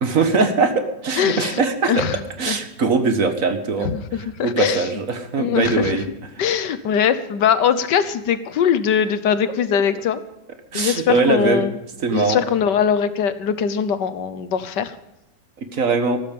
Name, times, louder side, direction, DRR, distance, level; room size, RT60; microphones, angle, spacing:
voice 1, 0.0-2.1 2.4-3.9 4.2-6.1 10.7-11.6 12.0-12.4 15.6-16.2, right 4 dB, 50° right, 8 dB, 1.7 m, -21 dB
voice 2, 1.2-1.6 1.9-2.2 2.5-2.6 3.8-4.8 5.4-5.9 6.4-10.2 10.7-11.7 12.1-14.9, left 8 dB, 80° left, 13 dB, 1.6 m, -21 dB
14.5 x 13.0 x 5.2 m, 0.94 s
omnidirectional pair, 1.8 m